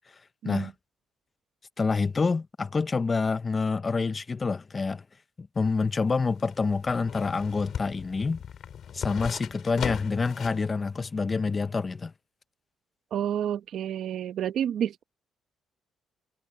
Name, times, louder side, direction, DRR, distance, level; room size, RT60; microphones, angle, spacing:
voice 1, 1.8-5.0 5.4-8.4 8.9-12.1, left 4 dB, 30° left, 0.7 m, -27 dB
sound 1, 5.6-10.7 11.0-11.1, left 8 dB, 65° left, 2.7 m, -38 dB
voice 2, 13.1-15.0, right 9 dB, 70° right, 1.0 m, -29 dB
cardioid pair, 90°, 0 cm